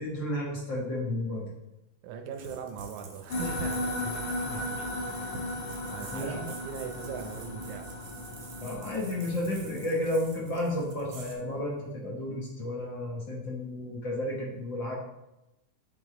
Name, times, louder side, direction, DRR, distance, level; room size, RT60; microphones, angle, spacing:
voice 1, 0.0-1.5 4.5-4.6 6.1-6.5 8.6-14.9, left 1 dB, 55° left, -3 dB, 1.4 m, -32 dB
voice 2, 2.0-5.3 5.9-7.9, right 7 dB, 80° right, 5 dB, 2.1 m, -40 dB
sound 1, 2.3-11.4, right 4 dB, 60° right, 1.6 m, -48 dB
sound 2, 3.3-10.9, left 1 dB, 85° left, 2.7 m, -36 dB
8.0 x 3.9 x 3.7 m, 0.95 s
omnidirectional pair, 3.5 m